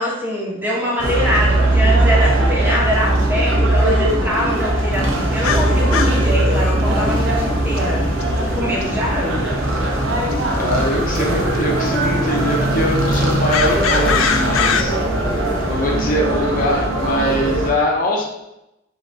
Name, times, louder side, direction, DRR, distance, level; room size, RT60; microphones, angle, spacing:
voice 1, 0.0-8.1 8.5-9.5, equal, 10° right, -4 dB, 0.9 m, -23 dB
sound 1, 1.0-17.7, right 1 dB, 75° right, 0.9 m, -19 dB
sound 2, 5.4-6.3 7.8-7.9 8.2-8.3 8.8-8.9 10.3-10.4 11.5-11.6 13.5-14.8, left 7 dB, 85° left, 0.4 m, -21 dB
voice 2, 10.6-15.0 15.3-18.2, left 1 dB, 45° left, -1 dB, 0.8 m, -22 dB
3.7 x 3.3 x 4.1 m, 0.90 s
head